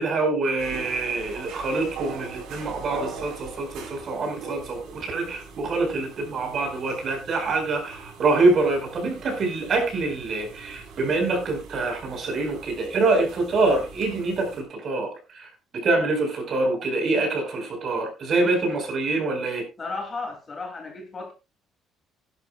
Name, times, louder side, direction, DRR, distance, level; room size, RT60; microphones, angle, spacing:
voice 1, 0.0-19.6, right 3 dB, 40° right, 4 dB, 4.7 m, -25 dB
sound 1, 0.6-14.6, right 4 dB, 65° right, 4.4 m, -41 dB
voice 2, 19.8-21.3, left 3 dB, 25° left, 3 dB, 2.7 m, -34 dB
17.0 x 11.0 x 2.3 m, 0.25 s
cardioid pair, 170°, 0 cm